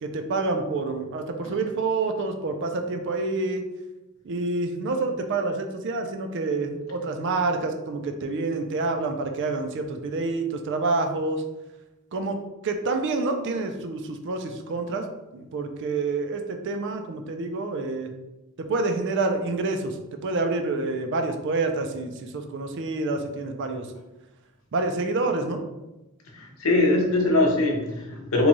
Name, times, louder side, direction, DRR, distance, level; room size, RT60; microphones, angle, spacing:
voice 1, 0.0-3.6 4.2-11.4 12.1-15.1 15.3-18.1 18.7-20.0 20.2-23.9 24.7-25.6, right 3 dB, 55° right, 5 dB, 0.4 m, -27 dB
voice 2, 26.3-28.5, left 2 dB, 70° left, 1 dB, 0.7 m, -22 dB
3.0 x 2.3 x 3.9 m, 1.0 s
head